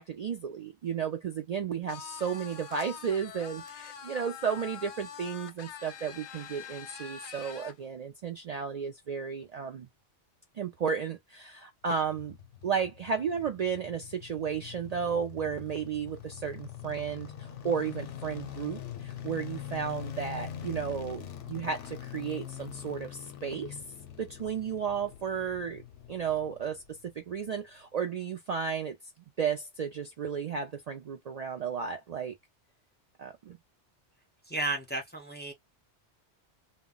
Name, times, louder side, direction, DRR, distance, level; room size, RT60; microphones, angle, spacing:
voice 1, 0.0-9.9 10.5-12.4 12.6-23.8 24.2-25.8 26.1-29.0 29.4-32.3 33.2-33.6, right 7 dB, 75° right, 0.3 m, -33 dB
sound 1, 1.9-7.8, left 7 dB, 60° left, 0.6 m, -45 dB
sound 2, 11.9-27.1 27.4-27.5, left 9 dB, 90° left, 0.9 m, -43 dB
voice 2, 34.5-35.5, right 2 dB, 10° left, 0.6 m, -33 dB
2.2 x 2.1 x 3.7 m
omnidirectional pair, 1.2 m